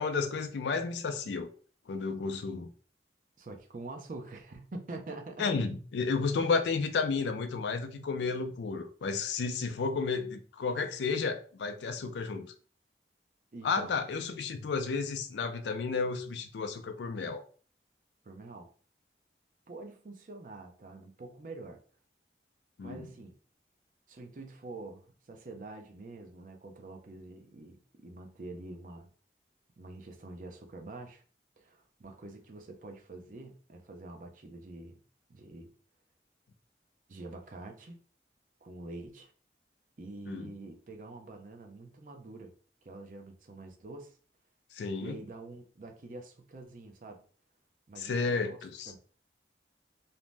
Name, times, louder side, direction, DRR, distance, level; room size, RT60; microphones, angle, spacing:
voice 1, 0.0-1.5 1.9-2.7 5.4-12.5 13.6-17.4 22.8-23.1 40.3-40.5 44.7-45.2 48.0-48.9, left 4 dB, 80° left, 0.4 m, -32 dB
voice 2, 3.4-5.5 6.4-6.5 13.5-13.9 18.2-18.7 19.7-21.8 22.8-23.3 24.1-29.1 29.8-31.2 31.6-35.0 35.3-35.7 37.1-38.0 38.6-39.3 40.0-42.5 42.8-44.2 45.0-47.2 47.9-48.6 48.9-49.0, right 2 dB, 45° right, 0.5 m, -46 dB
2.6 x 2.0 x 3.3 m
head